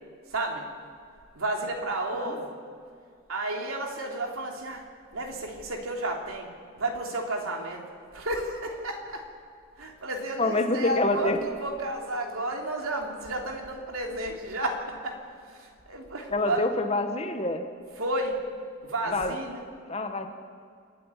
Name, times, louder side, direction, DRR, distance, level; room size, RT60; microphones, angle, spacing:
voice 1, 0.3-0.6 1.3-2.6 3.3-4.8 5.1-6.5 6.8-7.8 8.1-9.2 9.8-15.2 15.5-16.7 18.0-18.4 18.8-19.6, right 1 dB, 80° right, 2 dB, 3.2 m, -32 dB
voice 2, 10.4-11.4 16.3-17.6 19.1-19.3 19.9-20.3, left 2 dB, 30° left, 6 dB, 1.3 m, -26 dB
27.5 x 9.6 x 9.9 m, 2.2 s
head